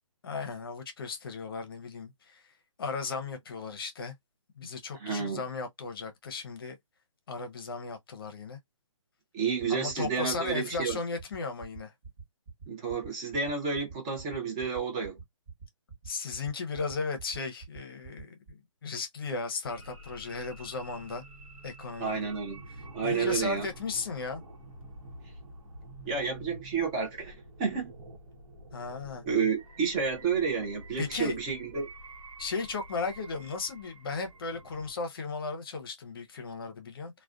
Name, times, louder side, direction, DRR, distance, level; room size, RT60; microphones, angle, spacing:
voice 1, 0.2-2.4 2.8-4.1 4.6-6.8 7.3-8.6 9.7-11.9 16.0-21.2 21.6-22.3 23.0-24.4 28.7-29.2 31.0-31.4 32.4-37.2, left 4 dB, 45° left, 0.7 m, -36 dB
voice 2, 5.0-5.4 9.3-11.0 12.7-15.2 22.0-22.6 22.9-23.7 26.1-27.9 29.3-31.9, right 5 dB, 15° right, 0.5 m, -30 dB
sound 1, 9.6-18.5, right 5 dB, 35° right, 1.1 m, -45 dB
sound 2, 19.7-34.9, right 1 dB, 85° right, 0.9 m, -48 dB
2.3 x 2.2 x 2.4 m
hypercardioid pair, 160°, 17 cm